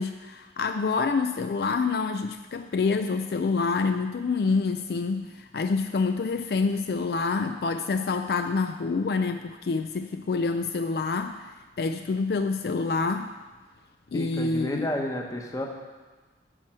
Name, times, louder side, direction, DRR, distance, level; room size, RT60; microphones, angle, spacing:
voice 1, 0.0-13.3 14.1-14.9, left 4 dB, 60° left, 7 dB, 0.3 m, -27 dB
voice 2, 14.1-15.7, left 1 dB, 20° left, 1 dB, 1.0 m, -31 dB
10.0 x 4.8 x 7.5 m, 1.3 s
head